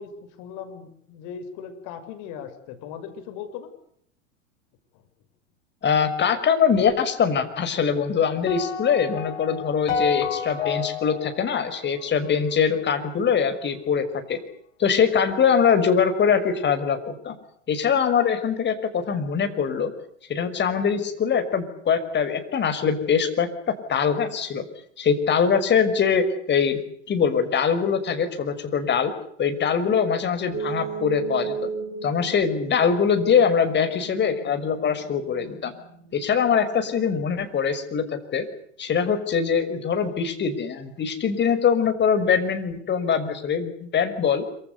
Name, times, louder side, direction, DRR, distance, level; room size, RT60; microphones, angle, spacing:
voice 1, 0.0-3.7, left 7 dB, 50° left, 9 dB, 6.7 m, -38 dB
voice 2, 5.8-14.4 14.8-17.4 17.7-19.9 20.3-23.5 23.9-24.6 25.0-26.8 27.1-29.1 29.4-31.7 32.0-35.7 36.1-38.5 38.8-44.4, left 6 dB, 30° left, 9 dB, 5.7 m, -23 dB
sound 1, 8.5-12.8, left 6 dB, 75° left, 4.5 m, -30 dB
sound 2, 30.5-37.5, right 6 dB, 30° right, 6.7 m, -36 dB
26.5 x 25.5 x 6.9 m, 0.67 s
hypercardioid pair, 95°, 37 cm